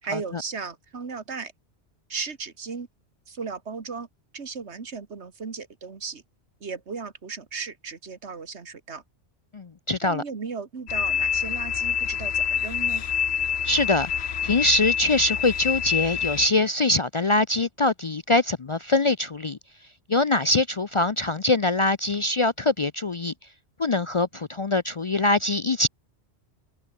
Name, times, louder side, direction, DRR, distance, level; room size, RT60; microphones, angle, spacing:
voice 1, 0.0-1.5 2.1-2.9 3.3-4.1 4.3-6.2 6.6-9.0 10.0-13.0, right 5 dB, 80° right, 2.1 m, -35 dB
voice 2, 9.5-10.2 13.6-14.1 14.4-19.6 20.1-23.3 23.8-25.9, left 2 dB, 35° left, 0.5 m, -23 dB
sound 1, 10.9-16.5, left 8 dB, 70° left, 1.2 m, -26 dB
omnidirectional pair, 1.1 m